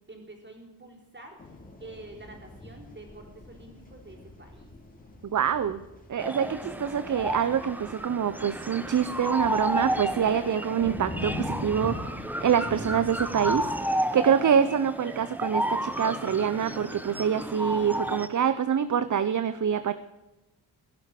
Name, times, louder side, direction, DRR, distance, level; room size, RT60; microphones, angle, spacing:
voice 1, 0.1-1.4 1.8-4.7, right 2 dB, 25° right, 2 dB, 4.5 m, -47 dB
sound 1, 1.4-13.8, left 2 dB, 20° left, 3.7 m, -42 dB
voice 2, 5.2-5.8 6.1-13.7 14.1-19.9, right 8 dB, 50° right, 13 dB, 0.7 m, -26 dB
sound 2, 6.2-18.3, equal, 5° right, 1.0 m, -32 dB
16.5 x 11.0 x 7.6 m, 1.0 s
wide cardioid pair, 150°, 40 cm